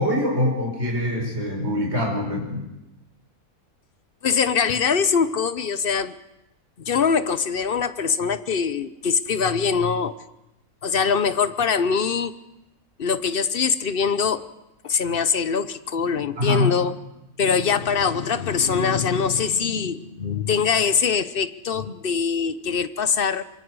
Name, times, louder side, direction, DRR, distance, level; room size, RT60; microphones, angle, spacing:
voice 1, 0.0-2.6 16.4-16.7, left 1 dB, 50° right, 6.0 m, -23 dB
voice 2, 4.2-6.1 6.9-10.1 10.8-12.4 13.0-14.5 14.8-16.9 17.4-23.4, left 6 dB, 45° left, 0.9 m, -23 dB
26.0 x 23.0 x 4.8 m
omnidirectional pair, 1.5 m